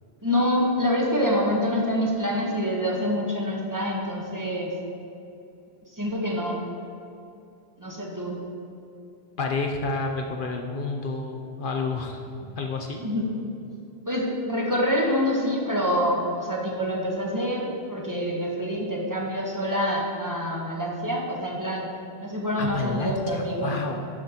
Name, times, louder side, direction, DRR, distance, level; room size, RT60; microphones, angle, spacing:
voice 1, 0.2-4.7 5.9-6.7 7.8-8.4 13.0-13.3 14.0-21.8 22.2-23.8, equal, 20° right, -3 dB, 1.0 m, -26 dB
voice 2, 9.4-13.0 22.6-23.9, left 3 dB, 60° left, 2 dB, 0.8 m, -30 dB
11.0 x 6.5 x 2.8 m, 2.7 s
omnidirectional pair, 1.0 m